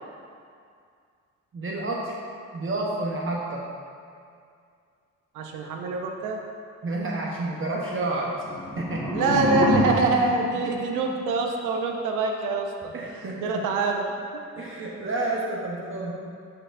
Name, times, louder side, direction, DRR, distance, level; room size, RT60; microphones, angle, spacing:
voice 1, 1.5-2.2 2.5-3.7 6.8-8.4 8.8-9.2 10.6-10.8 12.9-13.6 14.6-16.2, right 2 dB, 45° right, -3 dB, 0.9 m, -30 dB
voice 2, 5.3-6.4 9.1-12.9 13.4-14.1, right 3 dB, 90° right, 2 dB, 0.7 m, -25 dB
sound 1, 8.3-11.5, left 1 dB, 10° left, 1.6 m, -27 dB
10.5 x 4.5 x 2.6 m, 2.3 s
cardioid pair, 90°, 30 cm